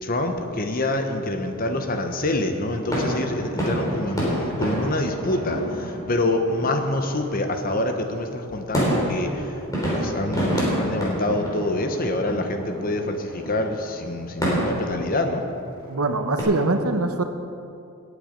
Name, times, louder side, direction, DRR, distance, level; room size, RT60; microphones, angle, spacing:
voice 1, 0.0-9.6 9.9-15.4, left 1 dB, 40° left, 5 dB, 1.1 m, -26 dB
sound 1, 2.2-16.4, equal, 15° left, 3.5 m, -29 dB
voice 2, 15.9-17.2, right 2 dB, 75° right, 7 dB, 1.0 m, -23 dB
19.5 x 8.3 x 5.3 m, 2.6 s
head